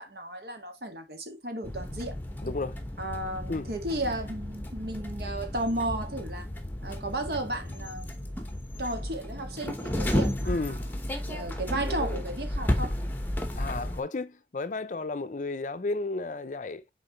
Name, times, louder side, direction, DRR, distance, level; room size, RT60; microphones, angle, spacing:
voice 1, 0.0-2.2 3.0-6.5 6.8-8.3 8.8-11.0 11.3-12.9, right 1 dB, 60° right, 1.7 m, -34 dB
sound 1, 1.6-14.0, left 1 dB, 10° left, 1.0 m, -33 dB
voice 2, 2.4-2.8 3.5-3.7 10.5-10.9 13.6-16.8, left 3 dB, 45° left, 0.5 m, -33 dB
6.9 x 4.6 x 3.0 m
head